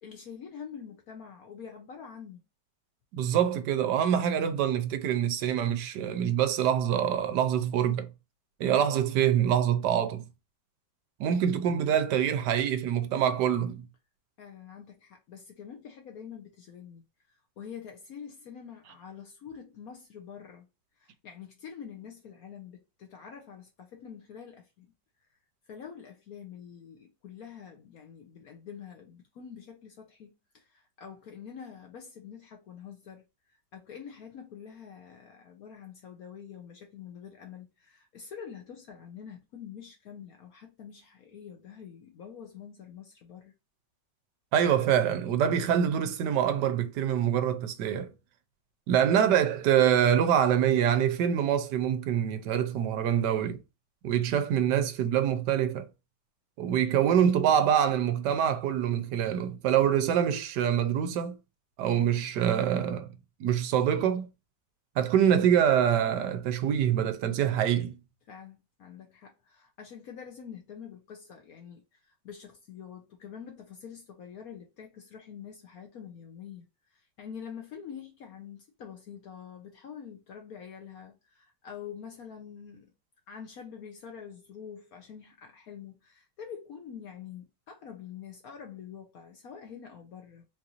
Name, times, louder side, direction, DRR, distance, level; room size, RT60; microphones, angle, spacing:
voice 1, 0.0-2.4 14.4-20.7 21.0-24.9 25.7-33.2 33.7-43.5 68.3-82.9 83.3-90.5, left 7 dB, 65° left, 1.1 m, -46 dB
voice 2, 3.1-8.1 8.6-10.2 11.2-13.8 44.5-48.1 48.9-53.6 54.0-55.9 56.6-61.4 61.8-63.1 63.4-64.3 65.0-68.0, right 9 dB, 85° right, 1.2 m, -25 dB
3.9 x 2.5 x 2.8 m
omnidirectional pair, 1.8 m